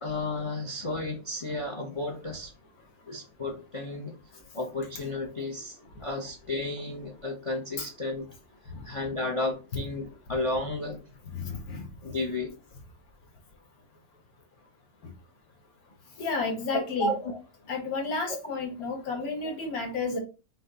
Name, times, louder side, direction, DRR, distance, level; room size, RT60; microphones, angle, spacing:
voice 1, 0.0-2.5 3.1-4.1 4.5-8.3 8.8-11.0 12.0-12.5 16.7-17.4 19.1-19.5 20.1-20.2, left 2 dB, 35° left, 2 dB, 0.6 m, -33 dB
voice 2, 11.3-11.9 16.2-17.1 17.7-20.2, left 3 dB, 85° left, 2 dB, 1.7 m, -31 dB
5.8 x 2.2 x 3.8 m, 0.32 s
omnidirectional pair, 1.5 m